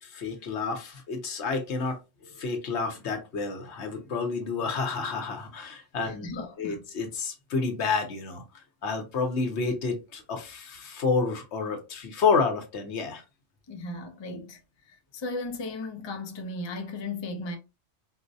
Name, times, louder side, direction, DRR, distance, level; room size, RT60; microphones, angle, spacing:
voice 1, 0.0-6.3 6.6-8.4 8.8-13.2, left 4 dB, 70° left, 1.1 m, -29 dB
voice 2, 6.0-6.9 13.7-14.6 14.9-17.6, left 2 dB, 35° left, 0.4 m, -36 dB
4.4 x 2.1 x 2.6 m
omnidirectional pair, 1.2 m